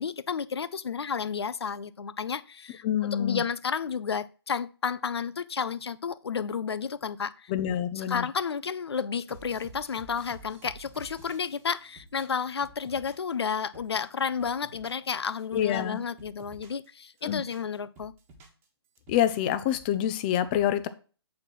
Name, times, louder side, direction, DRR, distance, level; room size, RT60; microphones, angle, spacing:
voice 1, 0.0-7.5 8.0-18.1, left 6 dB, 75° left, 0.6 m, -32 dB
voice 2, 2.8-3.4 7.5-8.2 15.5-16.0 17.2-17.4 19.1-20.9, left 10 dB, 20° left, 0.5 m, -26 dB
sound 1, 9.3-13.3 13.6-15.1 15.4-16.9 17.2-18.6 18.9-20.0, right 4 dB, 15° right, 1.4 m, -51 dB
8.5 x 4.3 x 4.5 m
hypercardioid pair, 150°, 14 cm